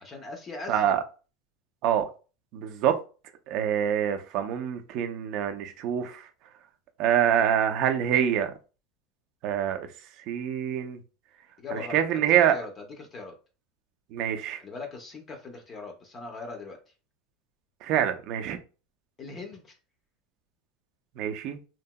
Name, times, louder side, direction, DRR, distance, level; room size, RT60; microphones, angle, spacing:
voice 1, 0.0-1.0 11.6-12.0 12.5-12.7 13.0-13.3 14.6-16.8 19.2-19.8, left 3 dB, 25° left, 3 dB, 0.6 m, -40 dB
voice 2, 0.7-1.0 1.8-2.1 2.5-3.0 3.5-6.3 7.0-8.5 9.4-9.9 10.3-11.0 11.7-12.6 14.1-14.6 17.8-18.6 21.2-21.6, right 9 dB, 50° right, 7 dB, 0.5 m, -25 dB
2.9 x 2.7 x 2.2 m, 0.33 s
supercardioid pair, 150°, 0 cm